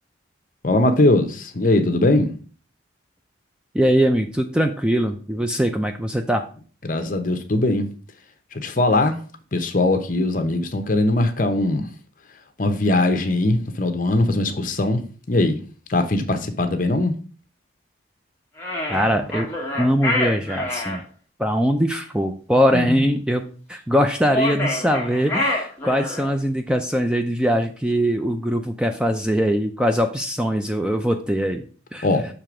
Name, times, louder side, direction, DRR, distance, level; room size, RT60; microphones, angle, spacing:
voice 1, 0.6-2.3 6.8-7.9 8.5-9.2 9.5-11.9 12.6-15.6 15.9-17.1 22.7-23.1 32.0-32.3, left 2 dB, 45° left, 7 dB, 0.9 m, -20 dB
voice 2, 3.7-6.4 18.9-21.0 21.4-32.1, equal, 5° right, 5 dB, 0.4 m, -22 dB
sound 1, 18.6-21.0 24.2-26.3, left 1 dB, 15° left, 1.4 m, -26 dB
6.8 x 3.3 x 6.0 m, 0.40 s
head